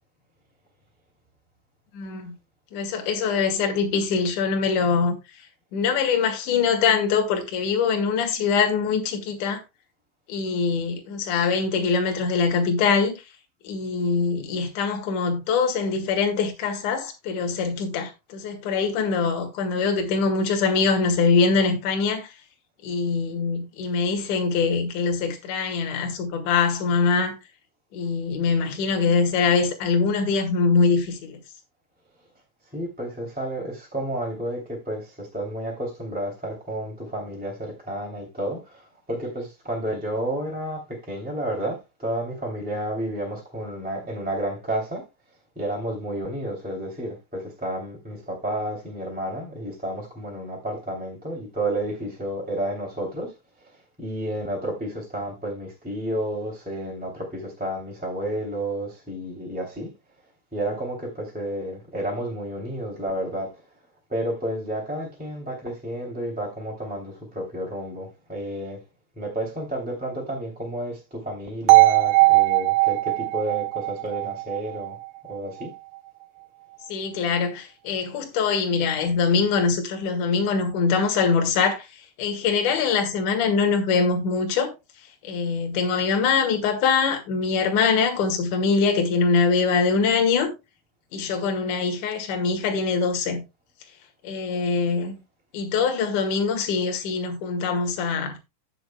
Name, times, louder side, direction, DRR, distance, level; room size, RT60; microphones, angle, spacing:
voice 1, 1.9-2.3 2.7-9.6 10.3-13.1 13.6-22.3 22.8-27.4 27.9-31.4 76.9-84.7 85.2-90.5 91.1-93.4 94.2-95.2 95.5-98.4, left 5 dB, 55° left, 2.8 m, -23 dB
voice 2, 32.7-45.1 45.5-53.3 53.7-59.9 60.5-63.6 64.1-68.8 69.2-75.0 75.3-75.7, right 1 dB, 5° right, 2.0 m, -31 dB
sound 1, 71.7-75.7, right 23 dB, 85° right, 3.1 m, -19 dB
17.0 x 6.3 x 2.2 m
omnidirectional pair, 5.0 m